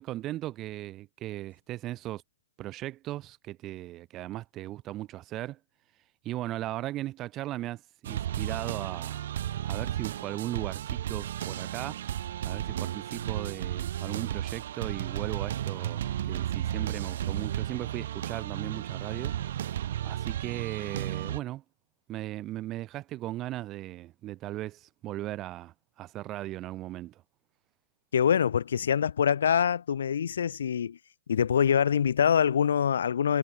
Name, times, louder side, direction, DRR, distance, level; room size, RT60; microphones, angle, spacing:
voice 1, 0.0-2.2 2.6-5.6 6.2-9.2 9.6-12.0 12.4-21.6 22.1-27.2, right 15 dB, 20° right, 1.0 m, -37 dB
sound 1, 8.0-21.4, right 11 dB, 60° right, 2.2 m, -33 dB
voice 2, 28.1-31.0 31.3-33.4, left 8 dB, 85° left, 0.5 m, -24 dB
hypercardioid pair, 165°, 0 cm